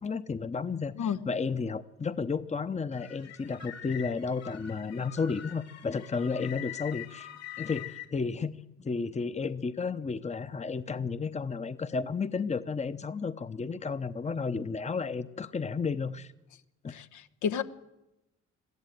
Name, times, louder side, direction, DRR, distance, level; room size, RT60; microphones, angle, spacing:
voice 1, 0.0-7.3 7.6-16.3 16.8-17.0, left 5 dB, 20° left, 13 dB, 0.9 m, -32 dB
sound 1, 2.9-8.1, left 13 dB, 55° left, 2.8 m, -44 dB
voice 2, 16.9-17.6, left 7 dB, 75° left, 8 dB, 1.2 m, -31 dB
21.5 x 14.5 x 9.3 m, 0.95 s
cardioid pair, 90°, 30 cm